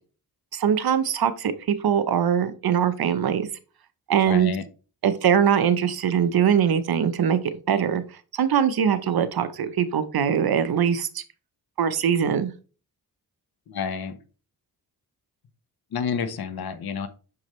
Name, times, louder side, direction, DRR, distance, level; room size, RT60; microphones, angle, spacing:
voice 1, 0.5-3.5 4.1-4.5 5.0-7.4 7.7-8.0 8.3-11.2 11.8-12.5, right 8 dB, 65° right, 12 dB, 0.8 m, -22 dB
voice 2, 4.3-4.6 13.7-14.2 15.9-17.1, left 6 dB, 70° left, 12 dB, 0.9 m, -29 dB
6.9 x 4.8 x 3.1 m, 0.36 s
cardioid pair, 75°, 39 cm